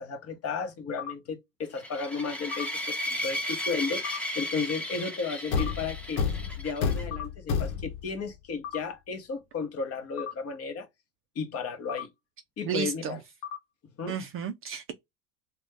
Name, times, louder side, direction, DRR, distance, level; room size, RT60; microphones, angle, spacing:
voice 1, 0.0-4.1 4.4-6.2 6.5-10.9 11.4-12.1 12.6-13.2 14.0-14.2, left 5 dB, 35° left, 0.8 m, -34 dB
sound 1, 1.0-1.1 2.5-2.7 4.0-4.2 5.6-5.7 7.1-7.3 8.6-8.8 10.2-10.3 11.9-12.0 13.4-13.6, left 9 dB, 55° left, 1.0 m, -36 dB
sound 2, 1.7-7.0, left 1 dB, 5° left, 0.7 m, -35 dB
Thump thud, 5.5-8.2, left 6 dB, 75° left, 0.9 m, -30 dB
voice 2, 12.7-13.2 14.1-14.9, right 7 dB, 30° right, 0.4 m, -32 dB
2.4 x 2.3 x 3.4 m
hypercardioid pair, 85°, 44 cm